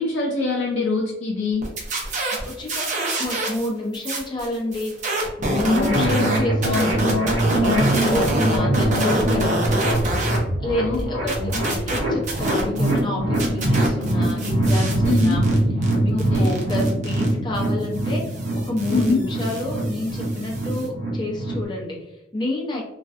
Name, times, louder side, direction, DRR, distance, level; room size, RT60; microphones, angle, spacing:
voice 1, 0.0-1.7 5.6-6.4 10.8-11.9 15.1-15.4 16.1-16.5 18.9-19.2, left 3 dB, 75° left, -1 dB, 0.4 m, -24 dB
sound 1, 1.6-3.7 3.9-10.4 10.7-13.0 13.3-20.9, right 2 dB, 40° right, 0.6 m, -28 dB
voice 2, 2.3-2.8 3.2-4.9 5.4-7.2 7.5-10.0 10.6-15.4 16.0-18.2 18.5-22.8, left 1 dB, 25° left, -2 dB, 0.6 m, -29 dB
sound 2, 5.7-21.6, right 1 dB, 85° right, 0.8 m, -23 dB
2.4 x 2.2 x 2.4 m, 0.88 s
head